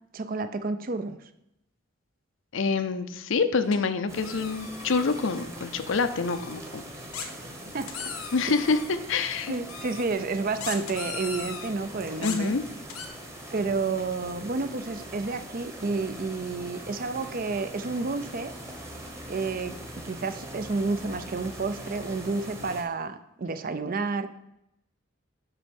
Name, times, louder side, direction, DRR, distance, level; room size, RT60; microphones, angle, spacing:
voice 1, 0.1-1.2 7.2-7.4 7.7-7.9 9.5-12.5 13.5-18.5 19.3-19.8 20.0-24.3, right 3 dB, 40° right, 11 dB, 0.5 m, -30 dB
voice 2, 2.5-6.8 8.3-8.8 9.1-9.5 12.2-12.6, left 4 dB, 65° left, 11 dB, 0.6 m, -26 dB
sound 1, 3.7-3.8 4.2-5.4 6.2-6.5 7.1-8.9 9.7-10.0 10.6-11.7 12.2-13.1, left 6 dB, 90° left, 1.1 m, -39 dB
sound 2, 4.1-22.8, right 1 dB, 15° right, 1.0 m, -42 dB
8.2 x 5.4 x 5.2 m, 0.82 s
head